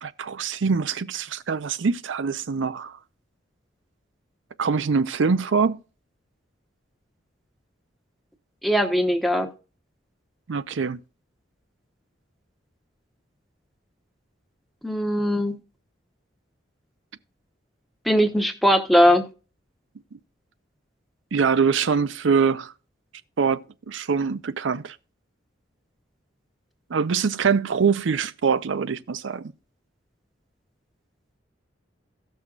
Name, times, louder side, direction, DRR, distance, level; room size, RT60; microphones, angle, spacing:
voice 1, 0.0-3.0 4.6-5.8 10.5-11.0 21.3-22.7 23.4-25.0 26.9-29.5, right 5 dB, 85° right, 0.5 m, -24 dB
voice 2, 8.6-9.5 14.8-15.6 18.0-19.3, equal, ahead, 1.0 m, -20 dB
16.5 x 6.3 x 2.4 m
head